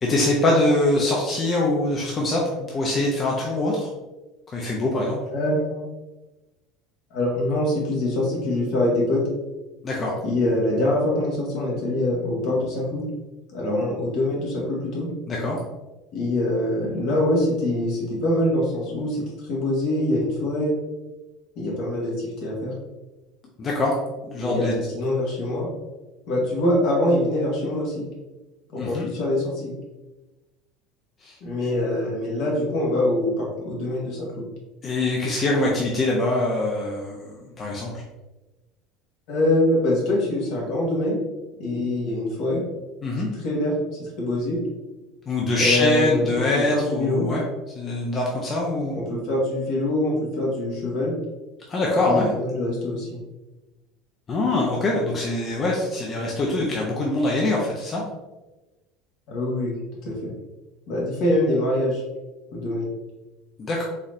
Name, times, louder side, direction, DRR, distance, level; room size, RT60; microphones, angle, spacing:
voice 1, 0.0-3.9 4.5-5.2 9.8-10.1 15.3-15.6 23.6-23.9 24.2-24.7 28.8-29.1 31.2-31.4 34.8-37.9 43.0-43.3 45.3-47.4 47.7-49.0 51.7-52.3 54.3-58.0 63.6-63.8, left 2 dB, 35° left, -2 dB, 0.7 m, -23 dB
voice 2, 5.3-5.8 7.1-9.2 10.2-13.0 13.5-15.1 16.1-19.2 19.5-20.7 21.6-22.7 24.4-25.7 26.3-28.0 28.7-29.7 31.4-34.4 39.3-41.2 41.6-42.6 43.4-43.7 44.0-44.6 45.6-47.3 48.9-51.1 52.0-53.2 59.3-59.7 60.0-60.3 60.9-62.0 62.5-62.9, left 1 dB, 65° left, -3 dB, 1.4 m, -24 dB
4.1 x 3.0 x 2.6 m, 1.1 s
supercardioid pair, 90°, 0 cm